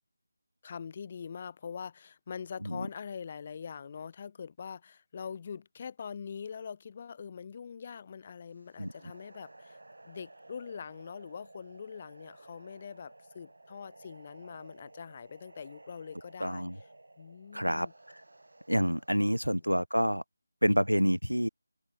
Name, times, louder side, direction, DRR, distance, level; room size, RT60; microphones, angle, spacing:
voice 1, 0.6-9.8 10.0-16.7 17.2-17.9, left 6 dB, 25° left, 0.7 m, -43 dB
sound 1, 8.5-19.6, right 2 dB, 60° right, 1.9 m, -55 dB
voice 2, 16.4-16.8 17.5-17.9 18.7-20.2 20.6-21.5, equal, 90° right, 0.5 m, -27 dB
figure-of-eight pair, 160°, 0 cm